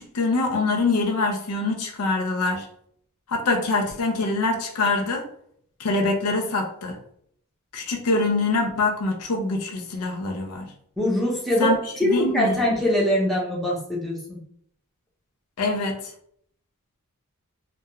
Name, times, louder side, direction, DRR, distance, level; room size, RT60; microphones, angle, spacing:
voice 1, 0.0-2.7 3.3-5.3 5.8-7.0 7.7-10.7 11.6-11.8 12.0-12.6 15.6-16.0, left 3 dB, 80° left, 2 dB, 0.5 m, -24 dB
voice 2, 11.0-11.7 12.0-14.4, equal, ahead, -5 dB, 0.6 m, -23 dB
2.2 x 2.2 x 2.9 m, 0.67 s
head